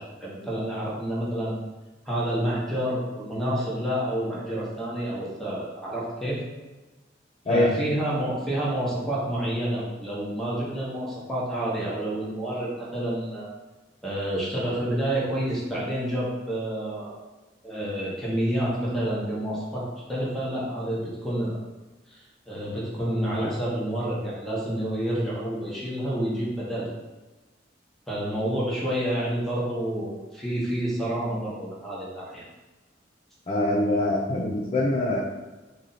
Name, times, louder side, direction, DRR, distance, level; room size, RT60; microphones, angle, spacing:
voice 1, 0.0-1.5 2.0-6.4 7.5-13.5 14.0-17.2 17.6-21.6 22.1-22.2 22.5-26.9 28.1-32.4, right 1 dB, ahead, -7 dB, 1.0 m, -29 dB
voice 2, 33.5-35.2, left 1 dB, 35° left, -4 dB, 0.5 m, -24 dB
3.1 x 2.6 x 4.0 m, 1.2 s
head